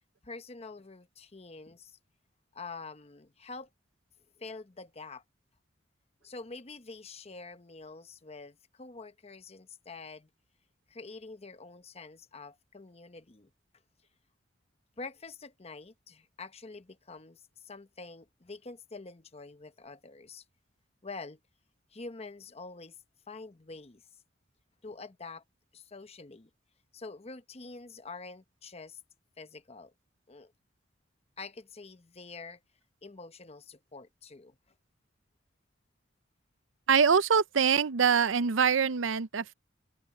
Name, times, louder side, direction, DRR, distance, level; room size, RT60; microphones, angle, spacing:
voice 1, 0.2-2.0 2.5-3.7 4.4-5.2 6.2-10.3 10.9-13.5 15.0-20.4 21.0-21.4 21.9-23.0 23.3-24.0 24.8-25.4 25.7-26.5 26.9-29.0 29.4-29.9 30.3-30.5 31.4-32.6 33.0-34.6, left 3 dB, 30° left, 0.9 m, -46 dB
voice 2, 36.9-39.5, right 6 dB, 80° right, 0.6 m, -24 dB
head